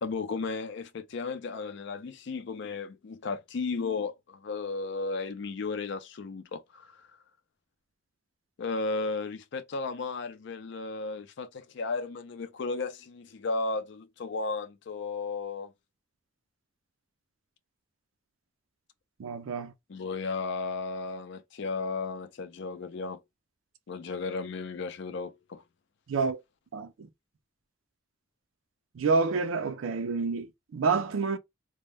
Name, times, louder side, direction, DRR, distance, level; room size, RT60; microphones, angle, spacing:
voice 1, 0.0-7.1 8.6-15.7 19.9-23.2 23.9-25.6, left 4 dB, 60° left, 0.4 m, -34 dB
voice 2, 19.2-19.7 26.1-26.4 26.7-27.1 28.9-31.4, right 4 dB, 80° right, 0.4 m, -28 dB
2.1 x 2.1 x 3.3 m
head